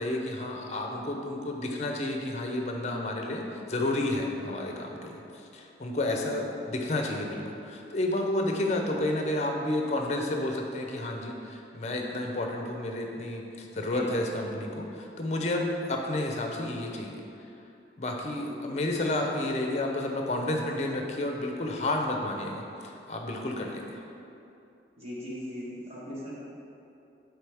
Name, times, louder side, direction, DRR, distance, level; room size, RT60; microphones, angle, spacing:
voice 1, 0.0-5.2 5.5-17.2 18.0-23.8, left 1 dB, 40° left, 2 dB, 0.6 m, -31 dB
voice 2, 6.1-6.5 13.9-14.1 18.5-18.6 25.0-26.3, equal, 35° right, -8 dB, 1.4 m, -39 dB
6.3 x 4.9 x 3.5 m, 2.8 s
head